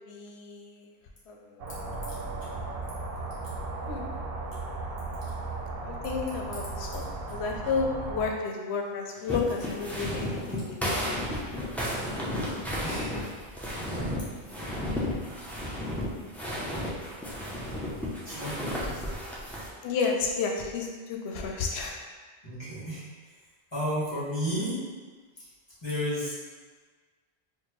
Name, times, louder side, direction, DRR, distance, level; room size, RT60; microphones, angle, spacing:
voice 1, 0.1-0.9 1.3-1.5 3.9-4.1 5.8-11.2 19.8-22.0, left 5 dB, 85° left, 1 dB, 0.8 m, -32 dB
sound 1, 1.6-8.3, right 3 dB, 65° right, 0.7 m, -36 dB
sound 2, 9.3-19.7, equal, ahead, 0.4 m, -33 dB
voice 2, 17.9-19.0 22.4-23.1 23.7-24.8 25.4-25.5 25.8-26.3, equal, 25° left, -10 dB, 1.5 m, -32 dB
4.5 x 2.1 x 3.0 m, 1.4 s
omnidirectional pair, 1.1 m